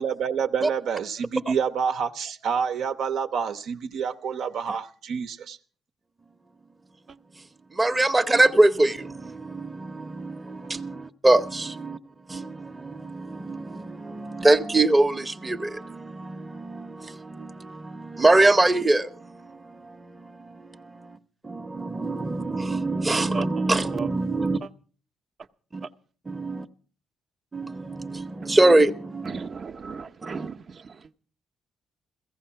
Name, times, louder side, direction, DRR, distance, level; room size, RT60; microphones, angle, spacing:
voice 1, 0.0-5.6, right 6 dB, 75° right, 0.9 m, -28 dB
voice 2, 7.7-12.0 12.3-21.2 21.4-24.6 25.7-25.9 26.3-26.7 27.5-29.5 30.3-30.5, right 2 dB, 20° right, 0.8 m, -24 dB
voice 3, 23.3-24.1 24.6-24.7 29.2-31.0, right 5 dB, 45° right, 0.8 m, -37 dB
16.5 x 15.0 x 5.7 m
cardioid pair, 90°, 0 cm